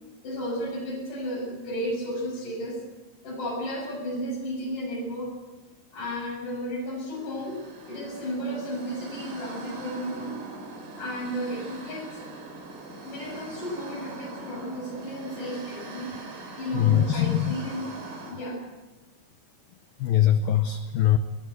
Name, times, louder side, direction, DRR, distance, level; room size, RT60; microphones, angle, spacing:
voice 1, 0.2-2.8 3.2-5.4 5.9-10.4 11.0-12.3 13.0-17.9 18.3-18.6 20.4-20.6, equal, 45° left, -1 dB, 8.6 m, -33 dB
sound 1, 7.0-18.3, right 2 dB, 50° right, 5.6 m, -42 dB
voice 2, 16.7-17.5 20.0-21.2, left 11 dB, 85° left, 9 dB, 2.0 m, -22 dB
21.0 x 20.5 x 7.9 m, 1.2 s
omnidirectional pair, 5.4 m